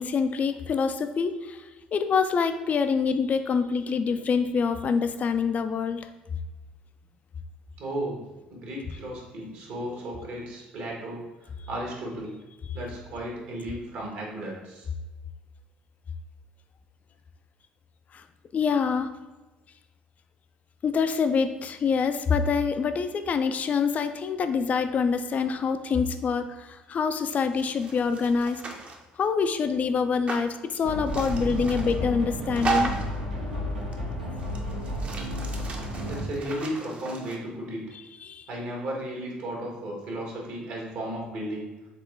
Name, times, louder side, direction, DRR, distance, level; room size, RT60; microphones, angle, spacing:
voice 1, 0.0-6.1 18.1-18.2 18.5-19.1 20.8-28.6 29.2-32.9 38.2-38.5, left 5 dB, 35° left, 9 dB, 0.3 m, -26 dB
voice 2, 7.8-8.2 8.5-11.3 11.7-12.4 12.7-14.9 36.0-37.8 38.5-41.6, right 1 dB, 55° right, -2 dB, 1.4 m, -34 dB
sound 1, 27.5-29.0 30.3-30.5 31.1-32.0 32.6-33.2 33.9-34.0 34.4-37.4, right 4 dB, 30° right, 0.8 m, -34 dB
sound 2, 30.8-36.2, equal, 80° right, 0.9 m, -32 dB
4.2 x 3.7 x 3.4 m, 1.2 s
figure-of-eight pair, 55°, 4 cm